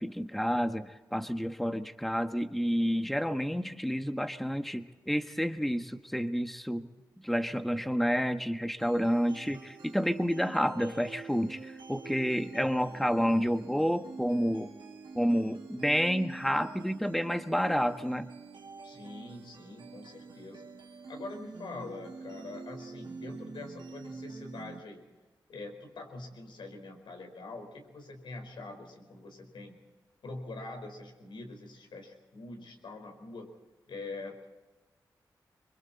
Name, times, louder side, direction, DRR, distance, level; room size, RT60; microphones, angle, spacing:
voice 1, 0.0-6.9 7.2-14.7 15.1-18.3, equal, ahead, 8 dB, 1.4 m, -29 dB
sound 1, 8.8-24.8, right 4 dB, 70° right, 2.5 m, -46 dB
voice 2, 18.8-25.1 25.5-29.7 30.2-33.5 33.9-34.5, left 3 dB, 75° left, 4 dB, 5.0 m, -44 dB
26.0 x 23.5 x 4.3 m, 1.2 s
cardioid pair, 45°, 8 cm